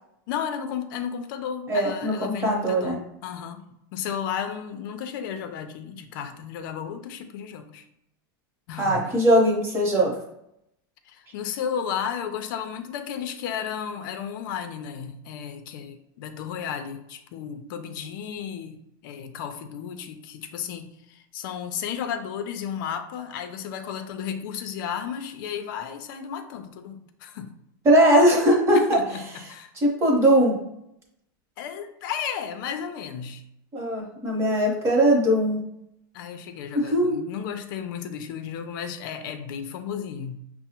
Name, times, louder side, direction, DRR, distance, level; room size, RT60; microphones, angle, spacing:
voice 1, 0.3-3.6 3.9-7.8 8.7-9.2 11.1-27.5 28.7-29.7 31.6-33.4 36.1-40.4, left 8 dB, 60° left, 8 dB, 0.5 m, -33 dB
voice 2, 1.7-3.0 8.8-10.1 27.8-29.0 29.7-30.5 33.7-35.6 36.7-37.2, right 1 dB, 20° right, -2 dB, 1.0 m, -20 dB
5.8 x 2.0 x 2.8 m, 0.79 s
supercardioid pair, 150°, 12 cm